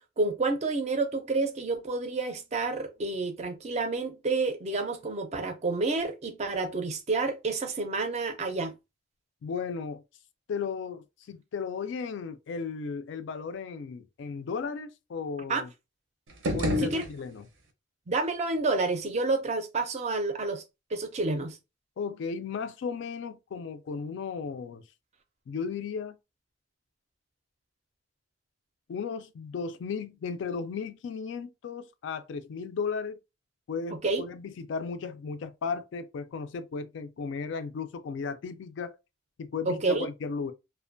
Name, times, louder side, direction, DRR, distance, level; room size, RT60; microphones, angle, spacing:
voice 1, 0.2-8.7 15.5-15.6 16.8-17.0 18.1-20.6 20.9-21.6 34.0-34.2 39.7-40.1, right 3 dB, 35° right, 0.4 m, -29 dB
voice 2, 9.4-10.0 10.5-15.7 16.5-17.5 22.0-24.8 25.5-26.2 28.9-33.2 33.7-39.0 39.4-40.5, left 5 dB, 70° left, 0.3 m, -35 dB
sound 1, 16.3-17.7, left 1 dB, 85° right, 0.6 m, -30 dB
2.4 x 2.1 x 2.5 m
head